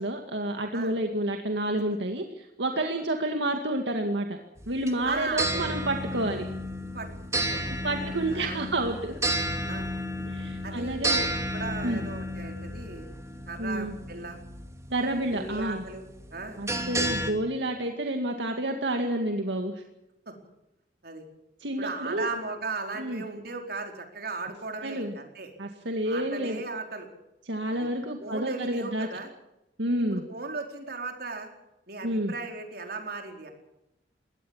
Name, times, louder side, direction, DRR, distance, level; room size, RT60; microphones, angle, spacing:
voice 1, 0.0-4.4 4.7-6.5 7.8-9.2 10.3-11.3 11.8-12.0 13.6-13.9 14.9-15.8 16.6-19.8 21.6-22.3 23.0-23.2 24.8-25.1 25.6-26.6 27.5-29.1 29.8-30.2 32.0-32.3, right 1 dB, 80° right, 4 dB, 2.2 m, -29 dB
sound 1, 4.6-17.3, right 1 dB, 15° right, 2.5 m, -32 dB
voice 2, 5.0-5.7 6.9-7.6 8.0-8.7 9.7-9.9 10.6-11.2 11.5-13.1 13.5-14.4 15.3-16.0 16.3-16.6 20.3-20.4 21.0-21.2 21.8-25.5 26.0-27.1 27.7-27.9 28.2-29.3 30.1-31.5 31.9-33.5, right 3 dB, 60° right, 3 dB, 4.6 m, -37 dB
22.5 x 18.0 x 7.3 m, 0.90 s
head